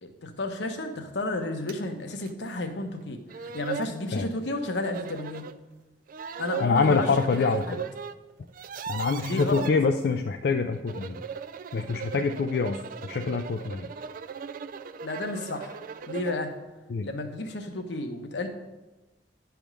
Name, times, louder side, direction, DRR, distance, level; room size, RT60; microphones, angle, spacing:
voice 1, 0.0-5.5 6.4-7.1 7.3-7.8 9.2-9.6 15.0-15.8 16.1-16.5 17.0-18.5, left 2 dB, 80° left, 5 dB, 0.9 m, -32 dB
sound 1, 1.7-1.8 2.3-2.4 3.0-3.1 3.3-4.0 4.8-5.6 6.1-8.1 8.4-9.7 10.7-16.4, right 6 dB, 50° right, 0.3 m, -38 dB
voice 2, 6.6-7.6 8.9-11.2 11.7-13.9 16.9-17.1, left 4 dB, 60° left, 6 dB, 0.4 m, -25 dB
9.9 x 3.5 x 6.1 m, 1.1 s
head